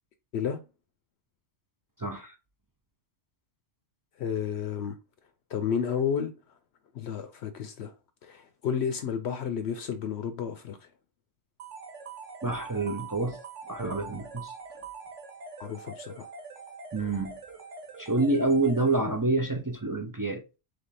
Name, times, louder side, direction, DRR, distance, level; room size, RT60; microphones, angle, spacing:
voice 1, 2.0-2.3 12.4-13.4 13.7-14.6 16.9-17.4 18.0-20.4, right 2 dB, 35° right, 0.3 m, -27 dB
voice 2, 4.2-5.0 5.5-6.3 6.9-7.9 8.2-10.9 15.6-16.3, left 7 dB, 70° left, 0.8 m, -31 dB
sound 1, 11.6-19.4, right 5 dB, 85° right, 1.3 m, -44 dB
3.5 x 3.4 x 4.1 m
omnidirectional pair, 1.2 m